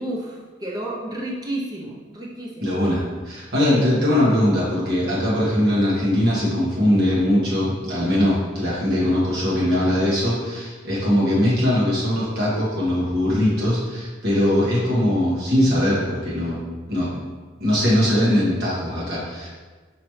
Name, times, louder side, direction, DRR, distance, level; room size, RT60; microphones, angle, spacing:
voice 1, 0.0-2.7, right 1 dB, 20° right, -3 dB, 0.5 m, -31 dB
voice 2, 2.6-16.6 16.9-17.1 17.6-19.5, left 1 dB, 55° right, -7 dB, 1.4 m, -21 dB
5.0 x 3.1 x 3.1 m, 1.4 s
head